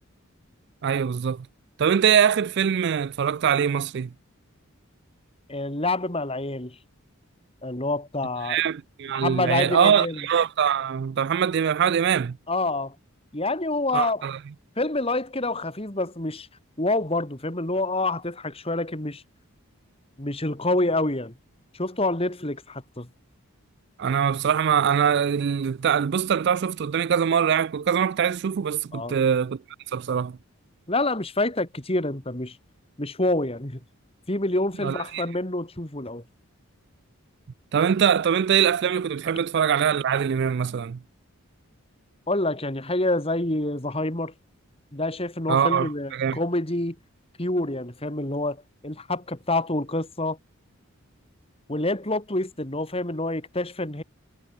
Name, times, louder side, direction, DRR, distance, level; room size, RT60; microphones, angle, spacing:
voice 1, 0.8-1.5 1.8-4.1 8.4-12.4 13.9-14.4 24.0-29.6 29.9-30.4 34.8-35.2 37.7-41.0 45.5-46.4, right 7 dB, 50° right, 0.3 m, -23 dB
voice 2, 5.5-6.8 7.6-8.6 9.2-10.2 12.5-13.0 13.3-14.3 14.8-16.5 16.8-19.2 20.2-21.3 21.7-23.1 28.9-29.2 30.9-32.6 33.0-33.8 34.3-36.2 42.3-44.3 44.9-47.0 47.4-48.6 48.8-50.4 51.7-54.0, left 2 dB, 25° left, 2.4 m, -27 dB
head